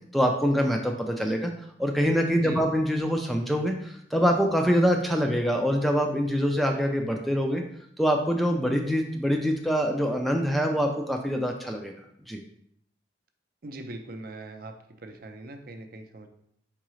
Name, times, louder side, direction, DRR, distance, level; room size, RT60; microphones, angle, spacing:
voice 1, 0.1-1.5 1.8-7.6 8.0-11.9 12.3-12.4, equal, ahead, 2 dB, 0.3 m, -25 dB
voice 2, 13.6-16.3, right 2 dB, 50° right, 5 dB, 0.5 m, -41 dB
4.7 x 3.6 x 3.1 m, 0.71 s
head